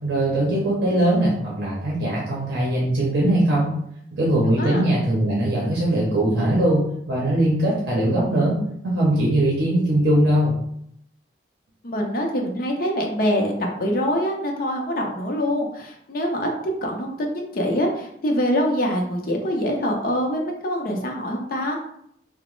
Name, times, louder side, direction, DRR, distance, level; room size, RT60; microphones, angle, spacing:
voice 1, 0.0-3.7 4.1-8.6 8.8-10.5, right 1 dB, 65° right, -5 dB, 0.7 m, -21 dB
voice 2, 11.8-21.8, equal, 50° left, 1 dB, 0.5 m, -24 dB
2.9 x 2.0 x 3.1 m, 0.73 s
head